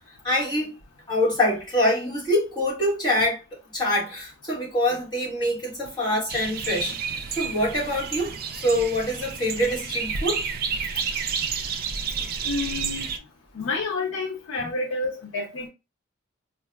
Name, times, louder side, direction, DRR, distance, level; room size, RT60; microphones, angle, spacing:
voice 1, 0.2-0.7 1.1-3.4 3.7-7.0 7.3-10.4, left 1 dB, 20° left, 1.5 m, -25 dB
sound 1, 6.3-13.2, right 6 dB, 45° right, 0.4 m, -30 dB
voice 2, 12.4-13.1 13.5-15.7, left 3 dB, 80° left, 0.6 m, -29 dB
4.5 x 2.3 x 2.2 m
head